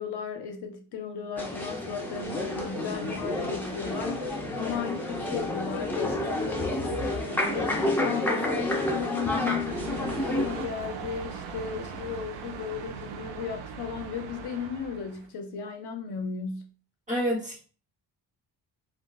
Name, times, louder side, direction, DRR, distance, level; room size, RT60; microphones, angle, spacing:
voice 1, 0.0-16.6, left 6 dB, 60° left, 0.5 m, -35 dB
sound 1, 1.4-10.6, left 1 dB, 5° left, 0.4 m, -30 dB
sound 2, 1.8-10.1, right 4 dB, 65° right, 0.9 m, -46 dB
sound 3, 9.6-15.3, right 6 dB, 85° right, 0.6 m, -40 dB
voice 2, 17.1-17.6, equal, 15° right, 1.0 m, -28 dB
3.6 x 2.4 x 2.2 m
cardioid pair, 135°, 45 cm